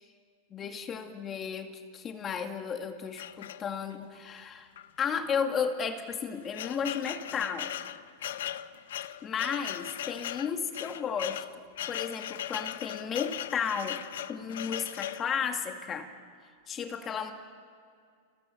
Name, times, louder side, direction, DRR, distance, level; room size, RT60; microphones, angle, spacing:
voice 1, 0.5-4.7 5.0-7.7 9.2-11.5 11.9-14.0 14.3-16.1 16.7-17.3, left 6 dB, 25° left, 5 dB, 2.1 m, -33 dB
sound 1, 3.2-4.0 4.8-4.9 5.2-5.3 6.0-15.3, left 11 dB, 75° left, 0.8 m, -38 dB
30.0 x 18.0 x 6.7 m, 2.2 s
hypercardioid pair, 130°, 0 cm